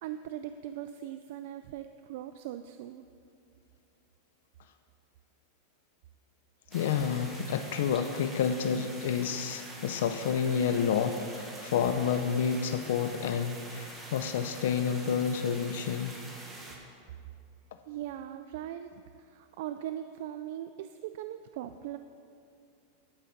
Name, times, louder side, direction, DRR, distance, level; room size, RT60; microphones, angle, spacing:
voice 1, 0.0-3.1 17.9-22.0, right 11 dB, 60° right, 9 dB, 0.3 m, -40 dB
voice 2, 6.7-16.1, left 7 dB, 80° left, 8 dB, 0.5 m, -29 dB
sound 1, 6.7-16.8, right 1 dB, 10° right, 1.3 m, -46 dB
11.5 x 5.2 x 5.8 m, 2.4 s
supercardioid pair, 150°, 0 cm